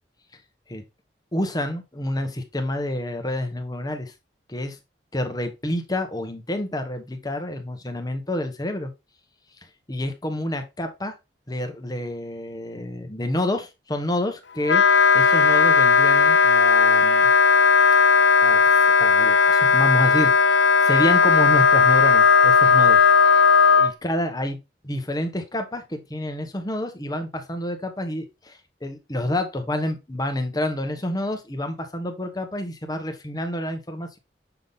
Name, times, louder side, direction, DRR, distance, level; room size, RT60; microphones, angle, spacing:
voice 1, 1.3-4.1 4.5-4.8 5.1-8.9 9.9-11.1 11.5-14.8 15.1-17.3 18.4-18.6 18.9-23.0 23.7-24.6 24.8-34.2, left 1 dB, 20° left, 1.1 m, -28 dB
Wind instrument woodwind instrument, 14.6-23.9, left 5 dB, 85° left, 0.7 m, -16 dB
6.9 x 3.7 x 3.9 m
head